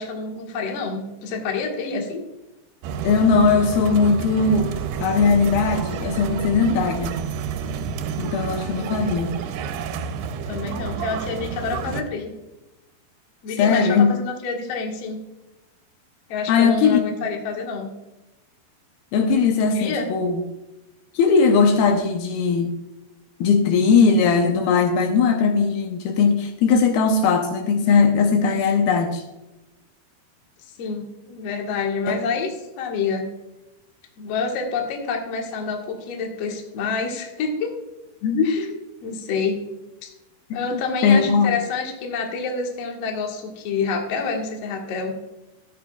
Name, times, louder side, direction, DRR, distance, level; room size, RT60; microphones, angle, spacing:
voice 1, 0.0-2.2 10.5-12.3 13.4-15.2 16.3-17.9 19.7-20.0 30.8-32.5 32.8-33.3 34.2-37.7 38.4-38.7 39.0-39.6 40.0-40.1 40.5-45.1, left 4 dB, 55° left, 1 dB, 2.0 m, -27 dB
sound 1, 2.8-12.0, right 6 dB, 90° right, 2.9 m, -29 dB
voice 2, 3.0-4.7 5.0-7.1 8.2-9.3 13.6-14.1 16.5-17.3 19.1-20.4 21.1-22.7 23.4-29.2 32.1-32.3 38.2-38.8 40.5-41.6, left 5 dB, 80° left, 4 dB, 2.6 m, -19 dB
12.5 x 10.5 x 2.3 m, 1.0 s
omnidirectional pair, 4.7 m